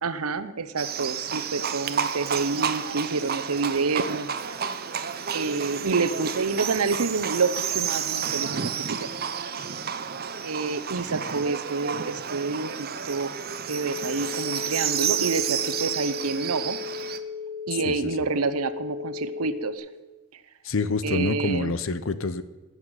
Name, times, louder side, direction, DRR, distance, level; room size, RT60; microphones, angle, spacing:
voice 1, 0.0-4.6 5.3-9.1 10.4-13.4 13.6-16.8 17.7-19.9 20.3-20.4 21.0-21.7, right 4 dB, 85° right, 13 dB, 0.9 m, -28 dB
Livestock farm animals working animals, 0.8-17.2, right 8 dB, 45° right, 0.7 m, -31 dB
sound 1, 13.8-19.8, left 6 dB, 35° left, 5.3 m, -36 dB
voice 2, 20.6-22.4, left 3 dB, 60° left, 14 dB, 0.8 m, -26 dB
16.0 x 6.6 x 9.1 m, 1.2 s
head